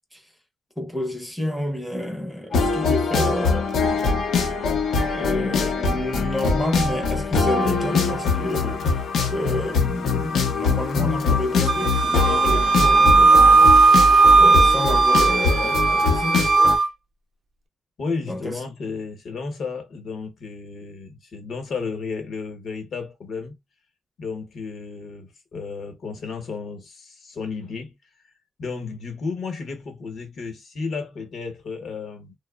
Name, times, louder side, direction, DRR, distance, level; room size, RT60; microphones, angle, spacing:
voice 1, 0.8-4.0 5.1-13.7 14.4-16.5 18.2-18.6, left 1 dB, ahead, 0.6 m, -29 dB
sound 1, 2.5-16.8, left 4 dB, 85° left, 0.6 m, -23 dB
Wind instrument woodwind instrument, 11.7-16.9, right 4 dB, 55° right, 0.5 m, -16 dB
voice 2, 18.0-23.6 24.2-27.9 28.6-32.3, left 4 dB, 65° left, 0.9 m, -33 dB
2.8 x 2.1 x 2.3 m
wide cardioid pair, 140°, 0 cm